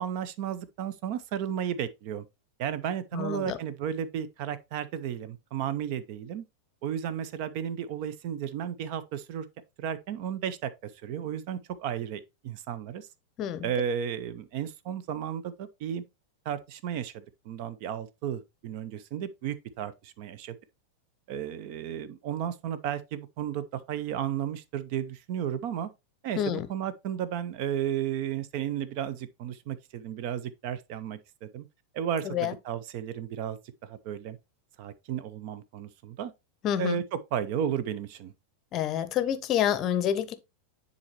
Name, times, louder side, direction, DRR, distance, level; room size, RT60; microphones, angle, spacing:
voice 1, 0.0-2.2 2.6-6.4 6.8-9.5 9.8-13.1 13.6-16.0 16.4-20.6 21.3-25.9 26.2-31.7 31.9-34.4 34.8-36.3 36.8-38.3, right 9 dB, 45° right, 0.7 m, -33 dB
voice 2, 3.1-3.6 13.4-13.7 26.4-26.7 32.2-32.5 36.6-37.0 38.7-40.3, left 10 dB, 35° left, 0.7 m, -28 dB
9.7 x 4.1 x 3.0 m
figure-of-eight pair, 90°, 0 cm